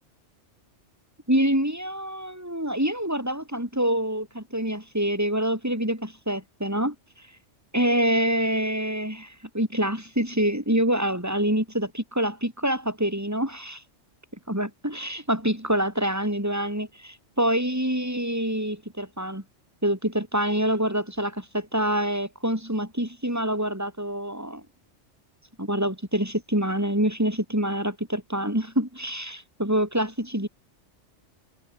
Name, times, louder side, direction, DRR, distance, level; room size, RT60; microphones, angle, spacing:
voice 1, 1.3-7.3 7.7-13.8 14.5-19.4 19.8-24.6 25.6-30.5, right 1 dB, 15° right, 7.6 m, -26 dB
omnidirectional pair, 1.2 m